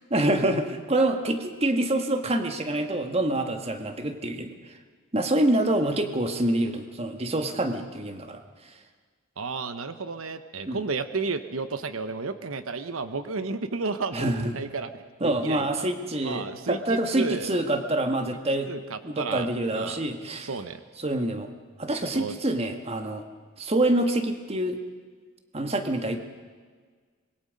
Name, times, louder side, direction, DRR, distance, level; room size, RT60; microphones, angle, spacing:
voice 1, 0.1-4.5 5.1-8.4 10.7-10.8 14.1-14.5 15.2-18.7 19.0-20.5 21.0-21.5 21.8-23.2 23.6-24.8 25.5-26.2, right 1 dB, 30° right, 6 dB, 1.7 m, -26 dB
voice 2, 9.4-15.7 16.2-17.5 18.6-19.5 19.7-20.0 20.4-20.8 22.1-22.3, right 4 dB, 90° right, 10 dB, 1.0 m, -32 dB
25.0 x 22.0 x 5.3 m, 1.6 s
head